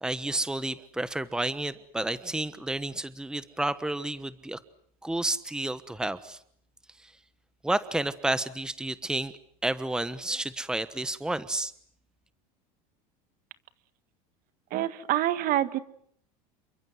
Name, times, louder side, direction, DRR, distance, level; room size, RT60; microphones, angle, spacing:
voice 1, 0.0-4.6 5.0-6.4 7.0-7.1 7.6-9.3 9.6-11.7, right 2 dB, 5° right, 14 dB, 1.2 m, -31 dB
voice 2, 14.7-15.8, right 13 dB, 50° right, 14 dB, 1.7 m, -26 dB
29.0 x 24.0 x 7.9 m, 0.66 s
supercardioid pair, 110°, 18 cm